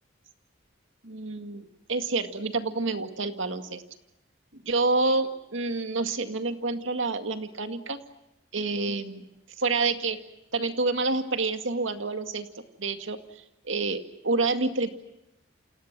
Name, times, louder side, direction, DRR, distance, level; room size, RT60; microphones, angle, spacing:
voice 1, 1.0-3.8 4.7-8.0 8.5-9.2 9.6-10.2 10.5-14.9, right 3 dB, 75° right, 8 dB, 2.1 m, -28 dB
29.0 x 28.0 x 6.1 m, 0.87 s
head